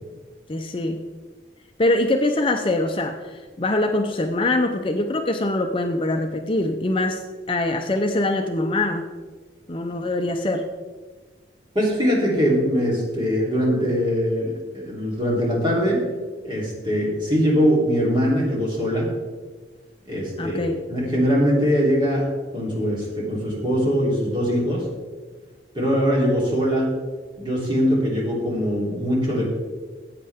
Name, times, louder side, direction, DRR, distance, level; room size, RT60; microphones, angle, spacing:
voice 1, 0.5-1.0 1.8-9.1 9.7-10.7 20.4-20.8, left 2 dB, 30° left, 4 dB, 0.6 m, -23 dB
voice 2, 11.7-16.0 16.4-19.1 20.1-22.2 22.5-24.8 25.7-26.9 27.4-29.4, equal, 25° right, -4 dB, 3.4 m, -22 dB
15.0 x 8.6 x 3.6 m, 1.4 s
head